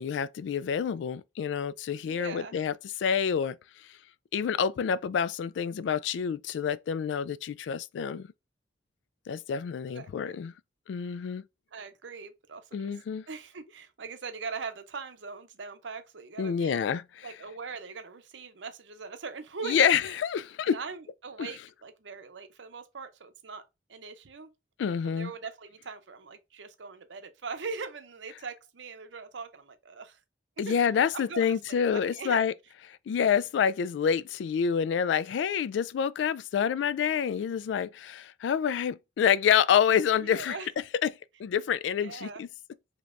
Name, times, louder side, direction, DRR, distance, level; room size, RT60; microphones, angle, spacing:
voice 1, 0.0-2.7 3.0-3.6 4.3-8.3 9.3-10.5 10.9-11.4 12.7-13.3 16.4-17.3 19.6-20.8 21.4-21.5 24.8-25.3 30.6-32.5 32.9-40.6 41.0-41.1 41.4-42.5, left 7 dB, 85° left, 0.3 m, -27 dB
voice 2, 2.0-2.6 9.9-10.4 11.7-13.0 13.3-16.9 17.2-20.1 20.7-23.6 23.9-24.5 25.2-30.2 30.6-32.4 40.2-40.7 42.0-42.4, right 5 dB, 85° right, 0.7 m, -41 dB
5.0 x 2.9 x 2.5 m
head